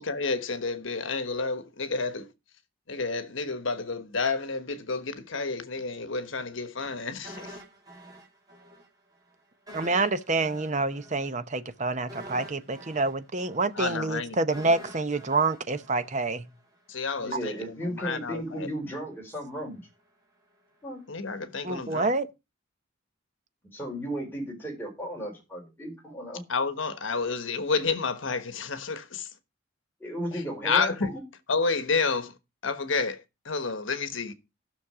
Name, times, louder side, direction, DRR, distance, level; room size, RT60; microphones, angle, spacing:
voice 1, 0.0-2.3 2.9-7.6 13.7-14.4 16.9-18.7 21.1-22.1 26.5-29.3 30.3-31.1 31.5-32.4 32.6-34.3, left 4 dB, 70° left, 1.2 m, -30 dB
sound 1, 7.2-8.9 9.1-9.3 9.7-16.7 17.0-17.2, equal, 20° right, 2.9 m, -46 dB
voice 2, 9.7-16.5 17.3-17.4 21.6-22.3, right 3 dB, 35° right, 0.8 m, -27 dB
voice 3, 17.2-19.8 20.8-21.0 23.7-26.4 30.0-31.2, equal, 10° left, 4.6 m, -35 dB
14.5 x 6.5 x 4.8 m
head